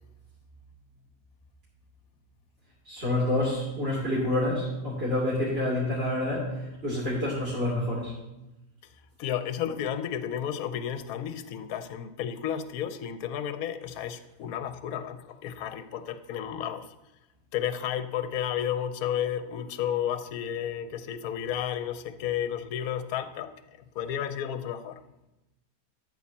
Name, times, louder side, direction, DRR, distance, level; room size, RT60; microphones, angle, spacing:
voice 1, 2.8-6.4 6.8-8.1, left 1 dB, 35° right, -8 dB, 3.1 m, -28 dB
voice 2, 9.2-16.9 17.5-23.5 23.9-25.0, left 9 dB, 65° left, 11 dB, 1.1 m, -32 dB
12.5 x 4.4 x 7.1 m, 0.97 s
omnidirectional pair, 1.7 m